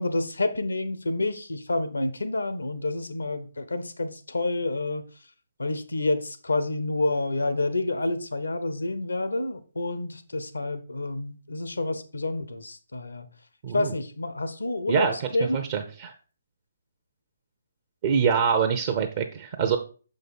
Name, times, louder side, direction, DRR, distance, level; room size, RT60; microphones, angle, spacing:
voice 1, 0.0-5.1 5.6-13.3 13.7-15.1 15.3-15.7, left 2 dB, 85° left, 1.0 m, -28 dB
voice 2, 14.9-16.1 18.0-19.8, right 7 dB, 40° right, 0.8 m, -25 dB
6.5 x 5.3 x 4.2 m
figure-of-eight pair, 145°, 0 cm